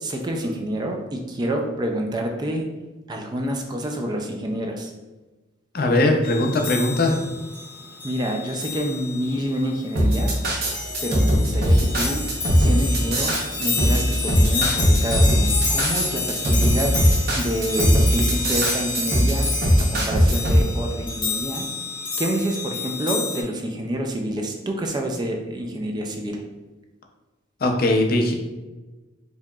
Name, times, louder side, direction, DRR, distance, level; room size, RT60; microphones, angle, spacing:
voice 1, 0.0-2.7 3.1-4.9 8.0-10.4 11.0-12.2 12.6-19.5 19.8-21.7 22.2-26.4, right 1 dB, 20° right, 2 dB, 0.3 m, -28 dB
voice 2, 5.7-7.3 27.6-28.3, left 2 dB, 50° left, 2 dB, 0.5 m, -20 dB
sound 1, 6.2-23.4, left 4 dB, 25° left, 0.8 m, -29 dB
sound 2, 10.0-20.6, equal, 55° right, 0.8 m, -19 dB
4.5 x 2.8 x 2.3 m, 1.2 s
head